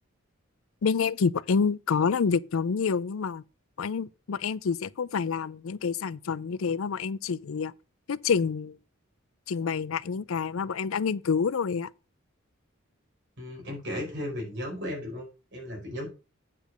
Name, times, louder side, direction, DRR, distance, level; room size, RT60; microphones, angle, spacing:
voice 1, 0.8-3.4 3.8-7.7 8.1-8.8 9.5-11.9, left 5 dB, 85° left, 0.5 m, -28 dB
voice 2, 13.4-16.1, left 1 dB, 60° right, 4.7 m, -35 dB
8.4 x 5.2 x 6.2 m
head